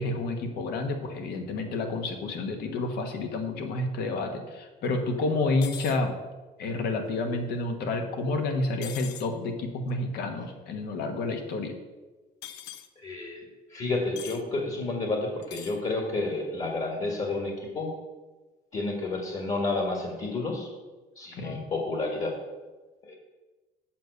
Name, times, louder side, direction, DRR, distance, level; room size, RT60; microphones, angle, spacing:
voice 1, 0.0-6.1 6.6-11.8 21.4-21.6, left 2 dB, 70° left, 5 dB, 1.3 m, -29 dB
sound 1, 5.6-6.0 8.8-9.3 12.4-12.9 14.2-14.4 15.4-15.8, left 11 dB, 85° left, 0.6 m, -41 dB
voice 2, 13.0-17.9 18.7-20.7 21.2-22.4 23.0-23.2, left 2 dB, 45° left, 1 dB, 1.8 m, -30 dB
7.4 x 5.3 x 6.6 m, 1.2 s
cardioid pair, 110°, 17 cm